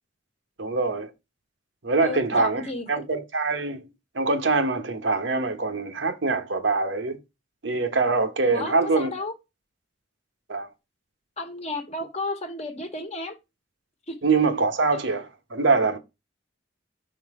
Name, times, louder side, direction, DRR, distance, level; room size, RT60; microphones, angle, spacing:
voice 1, 0.6-1.1 1.8-2.6 2.9-3.9 4.1-7.2 7.6-9.1 10.5-10.7 14.2-16.0, right 3 dB, 70° right, 1.0 m, -24 dB
voice 2, 2.0-3.0 8.5-9.3 11.4-13.4 14.1-14.2, left 2 dB, 35° left, 1.2 m, -33 dB
5.9 x 3.9 x 4.8 m
head